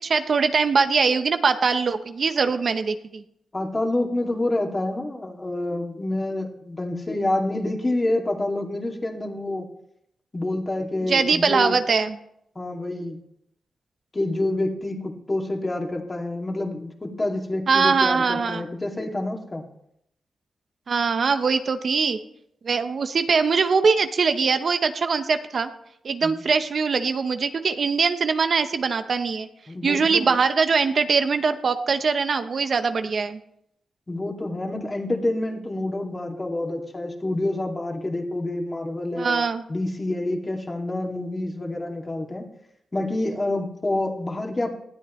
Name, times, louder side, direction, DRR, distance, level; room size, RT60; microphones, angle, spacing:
voice 1, 0.0-3.2 11.1-12.2 17.7-18.6 20.9-22.2 22.6-25.7 26.0-29.5 29.8-33.4 39.2-39.6, right 5 dB, 60° right, 9 dB, 0.9 m, -22 dB
voice 2, 3.5-9.7 10.3-11.8 12.6-13.2 14.1-19.7 26.2-26.3 29.7-30.3 34.1-39.4 39.7-42.5 42.9-44.7, left 2 dB, 30° left, 1 dB, 2.4 m, -27 dB
19.5 x 13.0 x 3.2 m, 0.77 s
cardioid pair, 65°, 0 cm